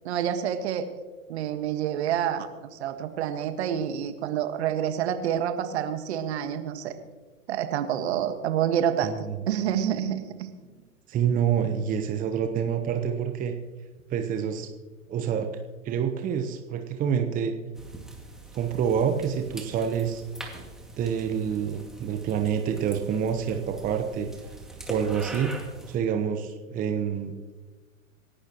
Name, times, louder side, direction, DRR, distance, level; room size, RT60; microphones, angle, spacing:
voice 1, 0.1-0.9 1.3-6.9 7.5-9.1 9.5-10.5, right 9 dB, 55° right, 8 dB, 1.7 m, -28 dB
voice 2, 9.0-9.3 11.1-13.5 14.1-14.7 15.1-15.5 15.8-17.5 18.5-20.2 21.0-24.3 24.9-25.5 25.9-27.4, right 8 dB, 20° right, 6 dB, 1.0 m, -27 dB
sound 1, 17.8-26.0, right 2 dB, ahead, 2.1 m, -43 dB
27.0 x 11.5 x 3.0 m, 1.3 s
figure-of-eight pair, 110°, 40 cm